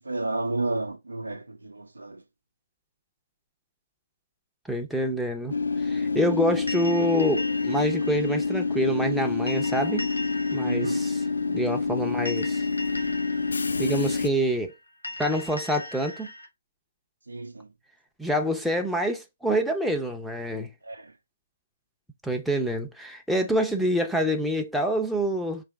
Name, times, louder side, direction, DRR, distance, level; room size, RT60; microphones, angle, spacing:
voice 1, 0.0-2.2 10.6-11.0 17.3-17.7 20.8-21.1, right 2 dB, 75° right, 0.6 m, -32 dB
voice 2, 4.7-5.5 5.8-10.1 10.5-11.2 11.5-12.6 13.8-14.7 15.2-16.3 18.2-20.7 22.2-25.6, equal, ahead, 0.5 m, -26 dB
Train / Subway metro underground, 5.5-14.3, left 4 dB, 65° left, 0.4 m, -27 dB
sound 1, 6.7-16.5, left 1 dB, 85° left, 1.2 m, -40 dB
4.1 x 3.2 x 3.5 m
figure-of-eight pair, 135°, 0 cm